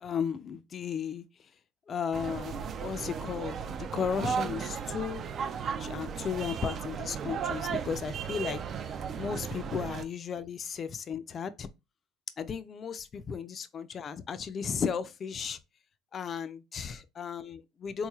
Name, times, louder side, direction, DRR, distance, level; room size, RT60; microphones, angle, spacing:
voice 1, 0.0-1.2 1.9-3.6 3.9-8.6 9.2-11.7 12.4-15.6 16.1-18.1, left 7 dB, 40° left, 0.4 m, -35 dB
sound 1, 2.1-10.0, right 7 dB, 45° right, 0.4 m, -35 dB
3.8 x 3.1 x 2.3 m
supercardioid pair, 105°, 0 cm